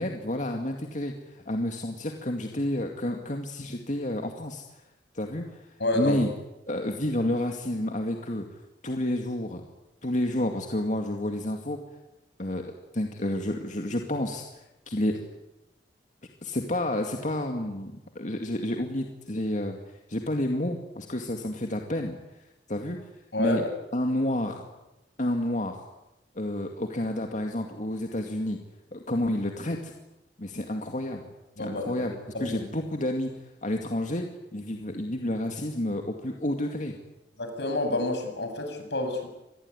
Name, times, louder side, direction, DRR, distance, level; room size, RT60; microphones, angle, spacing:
voice 1, 0.0-4.6 5.1-6.3 6.7-8.5 8.8-9.6 10.0-11.8 12.4-15.2 16.4-23.0 23.4-23.6 23.9-24.7 25.2-25.8 26.3-28.6 28.9-29.9 30.4-31.2 31.6-32.1 32.4-33.3 33.6-36.9, left 1 dB, 45° left, 3 dB, 2.3 m, -30 dB
voice 2, 5.8-6.2 23.3-23.6 31.6-32.1 32.3-32.5 37.4-39.3, left 2 dB, 75° left, 5 dB, 7.3 m, -28 dB
27.0 x 21.0 x 9.8 m, 0.96 s
head